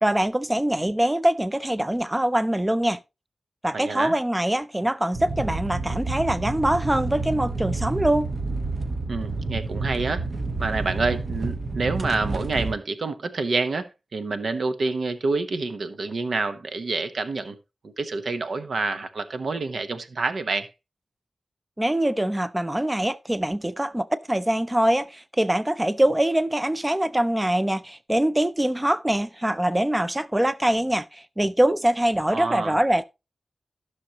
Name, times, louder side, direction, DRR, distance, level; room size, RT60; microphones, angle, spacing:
voice 1, 0.0-3.0 3.6-8.3 21.8-33.0, right 1 dB, 15° right, 0.4 m, -23 dB
voice 2, 3.7-4.1 9.1-10.2 10.6-13.9 14.1-17.6 18.0-20.7 32.3-32.8, right 3 dB, 80° right, 0.9 m, -27 dB
sound 1, 5.1-12.7, right 3 dB, 60° right, 1.2 m, -29 dB
14.5 x 6.2 x 2.9 m
wide cardioid pair, 60°, 0 cm